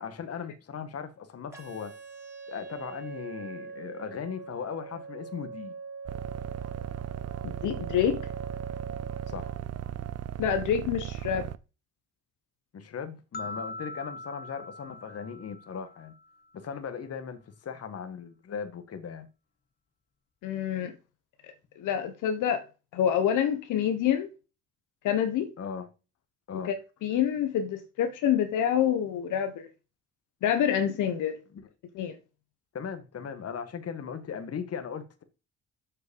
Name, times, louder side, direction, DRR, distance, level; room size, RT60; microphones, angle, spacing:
voice 1, 0.0-1.9 2.5-5.7 9.3-9.5 12.7-16.1 16.5-19.3 25.6-25.9 26.5-26.7 31.5-31.6 32.7-35.2, left 6 dB, 55° left, 1.9 m, -38 dB
sound 1, 1.5-9.5, right 4 dB, 10° right, 3.7 m, -43 dB
sound 2, 6.1-11.6, right 11 dB, 55° right, 0.7 m, -37 dB
voice 2, 7.4-8.2 10.4-11.5 20.4-20.9 21.4-22.6 22.9-24.3 25.0-25.5 26.5-26.7 27.0-29.7 30.4-31.4 31.9-32.2, left 9 dB, 85° left, 1.4 m, -27 dB
sound 3, 13.3-16.5, left 2 dB, 30° left, 1.0 m, -42 dB
7.4 x 6.3 x 7.1 m
cardioid pair, 90°, 30 cm